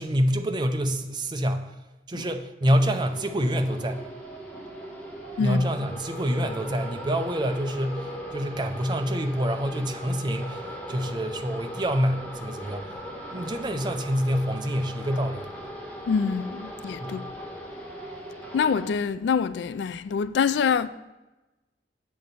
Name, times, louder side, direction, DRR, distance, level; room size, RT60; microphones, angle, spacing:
voice 1, 0.0-1.7 2.1-4.0 5.4-12.9 13.3-15.5 17.0-17.3, equal, 25° right, 0.5 m, -27 dB
sound 1, 2.6-18.9, equal, 10° left, 1.3 m, -39 dB
voice 2, 16.1-17.2 18.5-20.9, left 6 dB, 80° left, 0.3 m, -25 dB
7.8 x 3.9 x 6.7 m
head